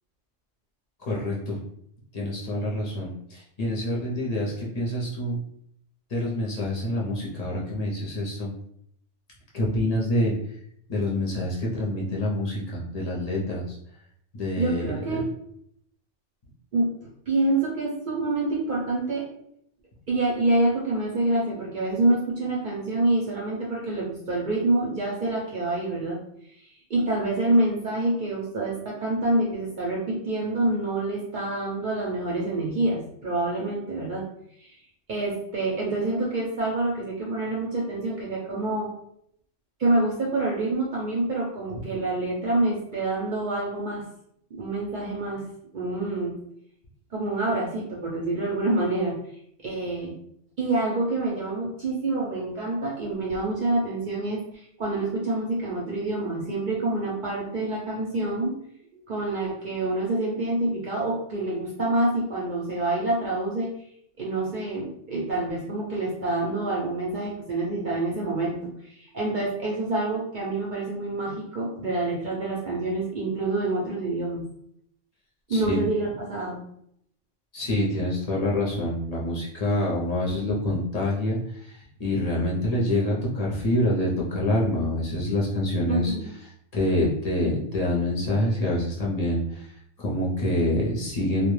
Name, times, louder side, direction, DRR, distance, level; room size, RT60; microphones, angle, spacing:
voice 1, 1.0-1.6 2.1-5.4 6.1-8.5 9.5-10.3 10.9-13.8 14.3-15.2 75.5-75.8 77.5-86.1 86.7-91.5, left 1 dB, 45° left, -5 dB, 0.5 m, -26 dB
voice 2, 14.6-15.3 16.7-19.3 20.1-26.2 26.6-34.3 34.6-34.7 35.1-38.9 39.8-44.0 44.5-45.4 45.7-46.4 47.1-49.2 49.6-50.2 50.6-58.6 59.1-63.7 64.2-74.4 75.5-76.6 85.9-86.3, right 2 dB, 55° right, -3 dB, 0.5 m, -27 dB
2.1 x 2.1 x 3.0 m, 0.70 s
omnidirectional pair, 1.3 m